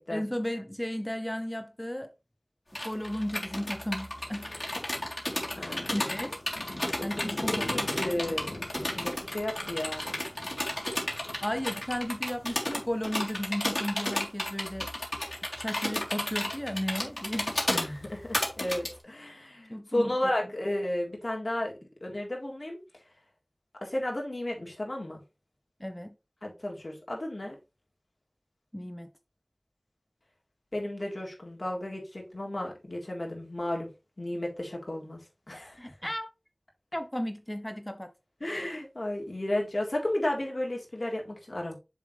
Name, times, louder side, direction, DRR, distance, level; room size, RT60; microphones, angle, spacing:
voice 1, 0.1-2.1 2.8-4.5 5.6-6.4 7.0-7.8 11.4-14.9 15.6-17.6 19.7-20.1 25.8-26.1 28.7-29.1 35.8-36.3 36.9-38.1, equal, 15° left, 0.7 m, -34 dB
sound 1, 2.7-18.9, left 1 dB, 50° left, 3.5 m, -32 dB
sound 2, 4.2-14.5, left 1 dB, 90° left, 2.9 m, -44 dB
voice 2, 5.5-5.9 7.0-8.5 9.0-10.2 17.7-21.7 22.0-22.8 23.8-25.2 26.4-27.6 30.7-33.9 34.2-35.2 35.5-35.8 38.4-41.8, left 1 dB, 65° left, 3.8 m, -33 dB
7.3 x 7.1 x 3.3 m
wide cardioid pair, 40°, 0 cm